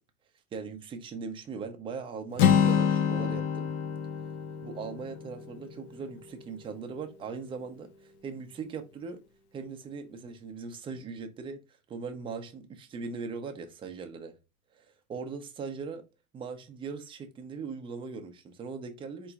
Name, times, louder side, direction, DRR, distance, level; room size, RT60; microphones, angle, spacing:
voice 1, 0.5-3.7 4.6-9.2 9.5-11.6 11.9-14.3 15.1-16.0 16.3-19.3, right 5 dB, 10° right, 0.5 m, -39 dB
Acoustic guitar, 2.4-6.3, left 8 dB, 40° left, 0.6 m, -27 dB
4.3 x 3.0 x 3.4 m
hypercardioid pair, 120°, 43 cm